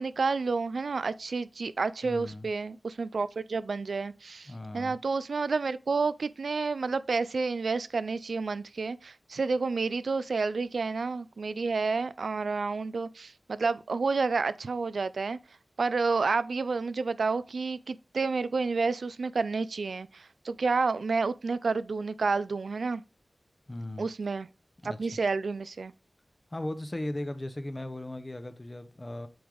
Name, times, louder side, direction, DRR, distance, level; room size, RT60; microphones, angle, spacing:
voice 1, 0.0-15.4 15.8-23.0 24.0-24.5 24.8-25.9, right 4 dB, 85° right, 0.3 m, -30 dB
voice 2, 2.0-2.5 4.5-5.0 23.7-24.1 24.8-25.1 26.5-29.3, left 1 dB, 25° left, 0.7 m, -37 dB
7.7 x 3.5 x 3.8 m
wide cardioid pair, 85°, 0 cm